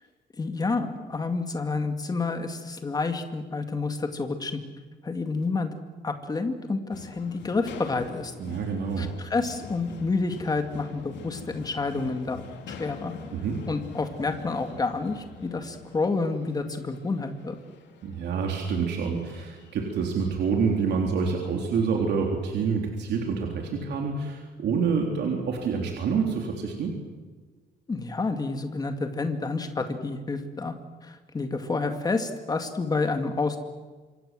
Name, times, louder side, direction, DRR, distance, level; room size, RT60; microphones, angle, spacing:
voice 1, 0.4-4.6 5.0-5.7 6.0-8.3 9.0-13.1 13.7-17.6 27.9-30.7 31.0-33.6, left 3 dB, 20° left, 6 dB, 2.1 m, -29 dB
sound 1, 6.9-22.2, left 6 dB, 75° left, 2.9 m, -45 dB
voice 2, 8.4-9.1 13.3-13.6 18.0-27.0, right 5 dB, 70° right, 1 dB, 3.6 m, -27 dB
26.5 x 24.5 x 7.7 m, 1.4 s
cardioid pair, 170°, 18 cm